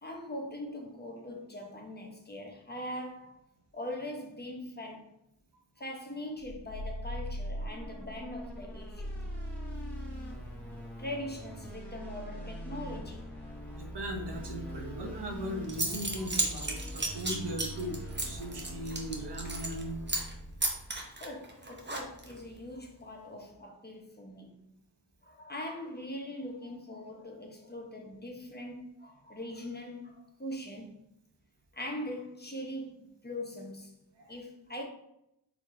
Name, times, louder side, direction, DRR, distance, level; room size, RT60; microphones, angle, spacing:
voice 1, 0.0-3.4 3.7-5.1 5.8-9.2 11.0-13.3 21.2-24.6 25.2-31.0 31.7-34.0 34.3-34.8, left 1 dB, 25° left, 1.0 m, -41 dB
sound 1, 6.4-21.0, equal, 5° left, 1.7 m, -41 dB
voice 2, 13.8-20.0 21.2-21.3 34.2-34.3, equal, 80° right, 1.0 m, -38 dB
Zipper (clothing) / Coin (dropping), 15.3-15.4 15.7-19.8 20.1-20.3 20.6-22.4, right 2 dB, 25° right, 1.0 m, -33 dB
4.3 x 2.9 x 4.2 m
wide cardioid pair, 60°, 41 cm